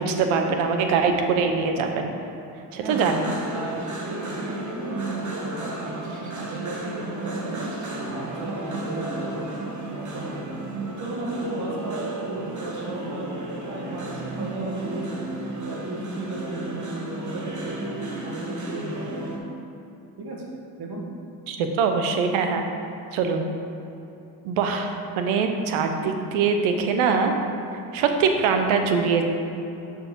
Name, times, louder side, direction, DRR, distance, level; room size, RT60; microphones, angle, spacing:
voice 1, 0.0-2.1 2.7-3.3 21.5-22.7 23.1-23.5 24.4-27.3 27.9-29.2, right 5 dB, 80° right, 5 dB, 0.9 m, -23 dB
sound 1, 2.9-19.4, right 2 dB, 35° right, 1.5 m, -33 dB
voice 2, 3.5-6.0 6.4-9.5 9.9-10.4 11.0-15.2 15.6-17.8 18.2-19.3 20.2-20.4 20.8-21.0, right 1 dB, 55° right, -2 dB, 1.6 m, -35 dB
6.4 x 4.8 x 6.1 m, 2.9 s
supercardioid pair, 60°, 48 cm